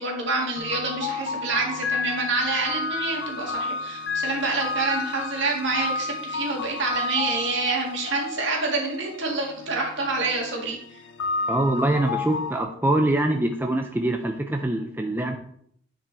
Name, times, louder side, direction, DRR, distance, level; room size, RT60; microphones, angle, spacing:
voice 1, 0.0-10.8, right 3 dB, 60° right, -1 dB, 2.0 m, -27 dB
sound 1, 0.6-12.6, left 4 dB, 60° left, 0.5 m, -31 dB
voice 2, 11.5-15.4, right 1 dB, 10° right, 3 dB, 0.4 m, -24 dB
9.7 x 5.1 x 3.4 m, 0.67 s
head